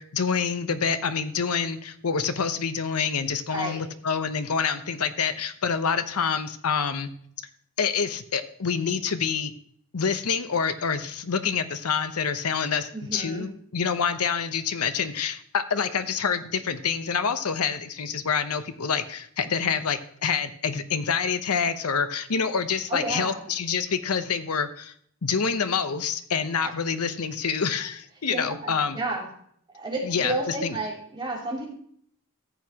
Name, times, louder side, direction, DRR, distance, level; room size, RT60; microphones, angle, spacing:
voice 1, 0.0-7.1 7.8-9.5 9.9-24.9 25.2-29.0 30.0-30.7, left 6 dB, 85° left, 10 dB, 0.8 m, -27 dB
voice 2, 3.5-3.9 12.9-13.5 22.9-23.4 26.6-26.7 28.3-29.3 29.7-31.6, right 2 dB, 20° right, -4 dB, 3.0 m, -31 dB
14.0 x 8.2 x 2.9 m, 0.63 s
head